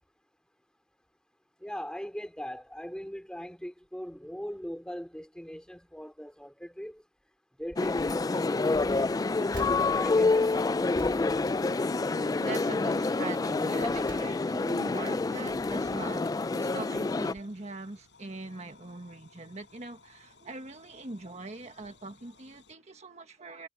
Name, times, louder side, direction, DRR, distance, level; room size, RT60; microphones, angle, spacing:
voice 1, 1.6-7.0 7.6-9.1 9.4-9.6 9.9-10.8, equal, 5° left, 2.8 m, -40 dB
sound 1, 7.6-8.3 8.7-12.4 12.7-13.0 13.5-14.8 15.3-16.3 16.9-17.1 17.4-17.5, right 1 dB, 70° right, 3.6 m, -48 dB
sound 2, 7.8-17.3, left 3 dB, 20° left, 0.3 m, -27 dB
voice 2, 11.9-23.7, right 2 dB, 35° right, 1.5 m, -42 dB
sound 3, 14.2-22.7, left 4 dB, 70° left, 6.1 m, -60 dB
head